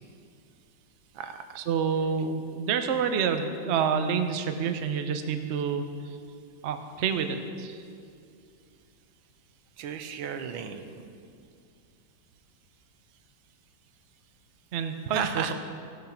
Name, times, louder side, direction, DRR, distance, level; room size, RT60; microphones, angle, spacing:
voice 1, 1.6-6.2 6.6-7.8 14.7-15.5, right 6 dB, 65° right, 7 dB, 0.6 m, -28 dB
voice 2, 9.8-11.0 15.1-15.5, right 7 dB, 90° right, 8 dB, 1.5 m, -34 dB
15.5 x 6.2 x 5.8 m, 2.3 s
omnidirectional pair, 2.1 m